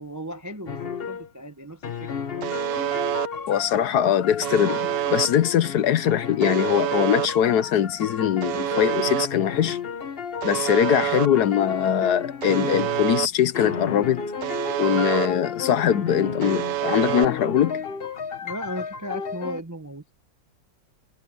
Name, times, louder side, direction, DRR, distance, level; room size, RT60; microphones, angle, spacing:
voice 1, 0.0-2.6 18.4-20.0, equal, 20° right, 0.4 m, -36 dB
sound 1, 0.7-1.3 1.8-13.3 13.5-19.6, left 6 dB, 40° left, 1.0 m, -33 dB
Alarm, 2.4-3.3 4.4-5.3 6.4-7.3 8.4-9.3 10.4-11.3 12.4-13.3 14.4-15.3 16.4-17.3, right 14 dB, 75° right, 1.2 m, -27 dB
voice 2, 3.5-9.8 10.4-14.2 14.8-17.8, left 9 dB, 65° left, 1.2 m, -22 dB
omnidirectional pair, 2.0 m